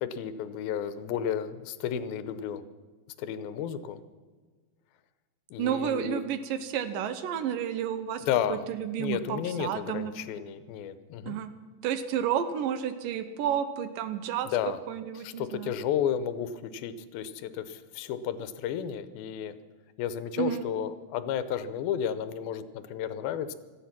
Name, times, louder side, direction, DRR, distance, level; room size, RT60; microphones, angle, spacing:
voice 1, 0.0-2.6 3.2-4.0 5.5-6.2 8.2-8.7 9.0-11.4 14.5-14.8 15.2-19.5 20.0-23.5, left 9 dB, 85° left, 13 dB, 2.6 m, -32 dB
voice 2, 5.6-10.1 11.3-11.5 11.8-14.5 14.9-15.7 20.4-20.7, right 9 dB, 75° right, 11 dB, 2.4 m, -31 dB
17.0 x 13.5 x 5.9 m, 1.4 s
omnidirectional pair, 4.2 m